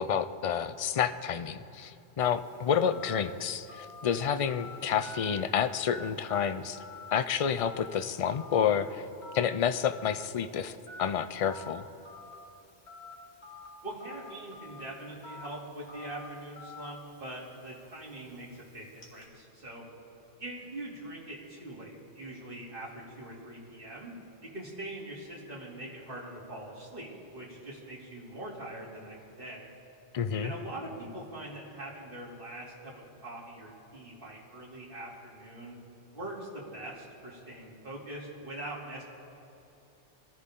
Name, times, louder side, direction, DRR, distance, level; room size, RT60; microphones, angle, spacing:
voice 1, 0.0-6.8 7.1-9.1 9.3-11.9 30.1-30.5, left 8 dB, 45° left, 10 dB, 0.4 m, -29 dB
Telephone, 2.2-19.3, left 2 dB, 70° left, 2.5 m, -49 dB
voice 2, 13.8-19.9 20.4-24.1 24.4-29.7 30.4-35.8 36.1-39.0, right 1 dB, 50° right, -5 dB, 3.3 m, -43 dB
24.5 x 14.5 x 3.8 m, 2.7 s
omnidirectional pair, 1.2 m